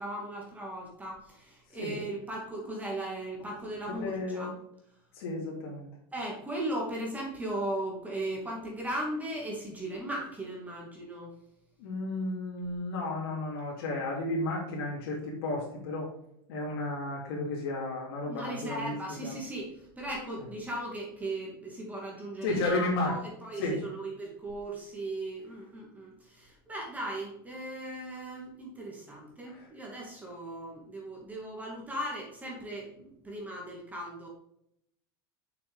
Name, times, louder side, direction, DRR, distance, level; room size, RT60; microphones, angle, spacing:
voice 1, 0.0-4.5 6.1-11.3 18.3-34.3, right 1 dB, 10° right, -2 dB, 2.3 m, -37 dB
voice 2, 3.9-4.5 5.2-5.9 11.8-16.1 16.5-18.9 19.2-19.3 22.4-23.1 23.6-23.8 29.5-29.6, left 2 dB, 70° left, -4 dB, 2.8 m, -33 dB
6.7 x 6.1 x 3.7 m, 0.75 s
supercardioid pair, 120°, 13 cm